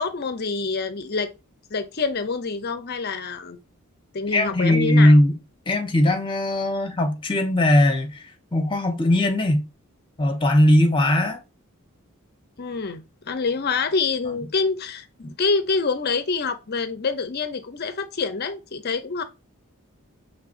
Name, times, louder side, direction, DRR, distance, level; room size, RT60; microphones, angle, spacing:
voice 1, 0.0-1.3 1.7-3.6 4.1-5.2 12.6-19.2, left 4 dB, 50° left, 0.7 m, -26 dB
voice 2, 4.3-5.3 5.7-8.2 8.5-9.6 10.2-11.4, left 1 dB, 25° left, 1.0 m, -19 dB
6.0 x 3.4 x 2.5 m
head